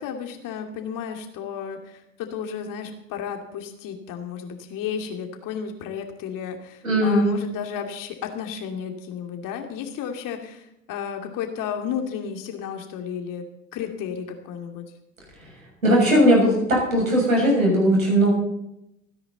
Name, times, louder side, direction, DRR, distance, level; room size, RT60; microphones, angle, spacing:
voice 1, 0.0-10.6 10.9-13.4 13.7-14.8, left 7 dB, 50° left, 4 dB, 2.8 m, -33 dB
voice 2, 6.8-7.3 15.8-18.3, equal, 90° right, -2 dB, 6.6 m, -18 dB
26.0 x 9.9 x 4.0 m, 0.81 s
hypercardioid pair, 70°, 40 cm